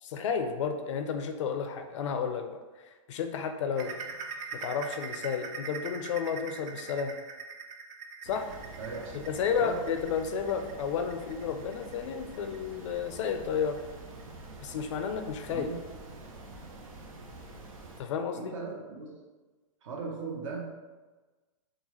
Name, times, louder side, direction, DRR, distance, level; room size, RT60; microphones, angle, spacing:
voice 1, 0.0-2.6 3.1-3.9 4.5-7.1 8.2-8.5 9.1-13.8 14.6-15.7 18.0-18.5, left 6 dB, 60° left, 6 dB, 0.5 m, -32 dB
sound 1, 3.8-15.0 15.4-15.6 16.0-16.1 16.7-16.8, right 5 dB, 35° right, 0.4 m, -43 dB
sound 2, 8.2-18.0, right 2 dB, 90° right, 0.7 m, -47 dB
voice 2, 8.8-9.3 9.6-9.8 15.5-15.8 18.3-19.1 19.8-20.7, right 4 dB, 65° right, -1 dB, 0.9 m, -38 dB
3.8 x 2.4 x 3.0 m, 1.3 s
hypercardioid pair, 135°, 17 cm